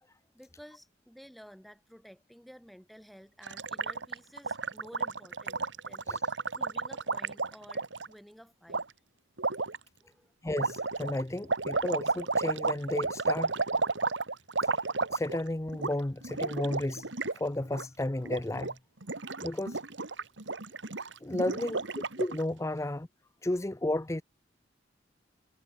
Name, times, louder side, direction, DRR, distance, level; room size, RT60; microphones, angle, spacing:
voice 1, 0.3-8.8 10.0-10.3, equal, ahead, 5.7 m, -53 dB
Gurgling, 3.4-8.1 8.7-8.8 9.4-9.8 10.5-15.5 15.7-15.9 16.2-17.4 17.6-17.8 18.2-18.7 19.0-22.4, right 4 dB, 85° right, 2.1 m, -32 dB
voice 2, 10.4-13.5 14.6-14.7 15.1-17.1 17.3-18.8 19.4-19.8 21.2-21.8 22.2-23.1 23.4-24.2, left 1 dB, 15° left, 0.6 m, -33 dB
head